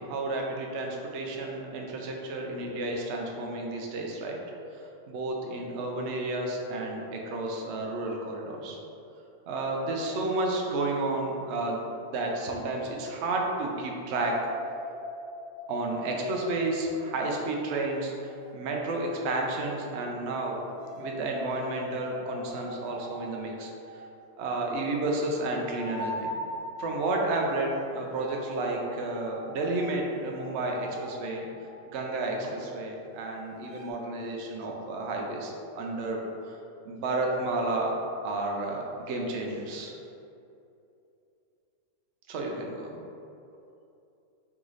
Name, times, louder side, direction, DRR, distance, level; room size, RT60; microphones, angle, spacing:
voice 1, 0.0-4.4 5.1-8.8 9.5-11.8 12.1-14.3 15.7-20.6 20.9-23.7 24.4-26.1 26.8-31.5 31.9-36.2 36.5-36.6 36.8-37.9 38.2-39.9 42.3-43.0, right 2 dB, 85° right, 0 dB, 0.6 m, -31 dB
sound 1, 14.1-18.7 20.5-33.9, equal, 65° right, 1.3 m, -42 dB
3.5 x 3.1 x 3.9 m, 2.7 s
omnidirectional pair, 1.9 m